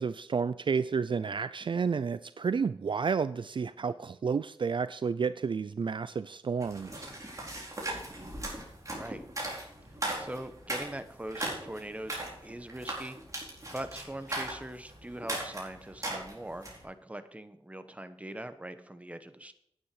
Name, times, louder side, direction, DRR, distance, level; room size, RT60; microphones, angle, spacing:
voice 1, 0.0-7.1, right 5 dB, 55° right, 14 dB, 0.4 m, -31 dB
sound 1, 6.6-16.8, right 1 dB, 35° right, 4.3 m, -38 dB
voice 2, 10.2-13.2 13.7-19.5, right 1 dB, 15° right, 10 dB, 1.1 m, -42 dB
9.8 x 9.0 x 4.9 m, 0.74 s
cardioid pair, 60°, 10 cm